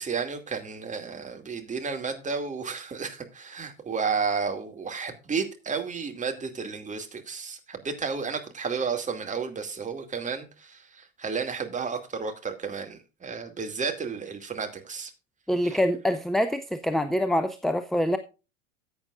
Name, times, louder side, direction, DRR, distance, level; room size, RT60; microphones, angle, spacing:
voice 1, 0.0-15.1 15.6-15.8, right 5 dB, 20° right, 2.5 m, -32 dB
voice 2, 15.5-18.2, equal, ahead, 0.4 m, -25 dB
14.5 x 8.7 x 2.5 m
figure-of-eight pair, 80°, 40 cm